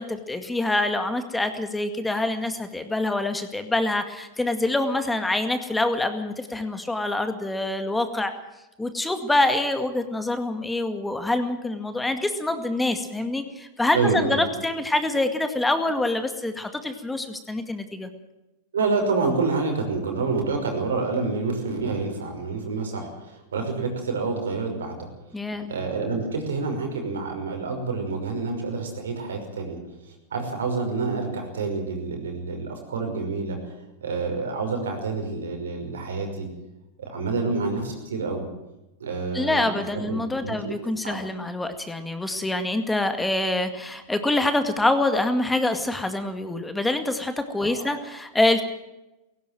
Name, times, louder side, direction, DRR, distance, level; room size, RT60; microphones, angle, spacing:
voice 1, 0.0-8.3 8.8-18.1 25.3-25.7 39.3-48.6, left 2 dB, 10° left, 8 dB, 2.1 m, -25 dB
voice 2, 13.9-14.5 18.7-25.0 25.7-33.7 34.0-36.5 37.0-38.4 39.0-39.8 40.1-40.7 41.0-41.2 47.6-47.9, right 4 dB, 85° right, 4 dB, 5.8 m, -28 dB
17.5 x 16.5 x 9.1 m, 0.99 s
hypercardioid pair, 105°, 0 cm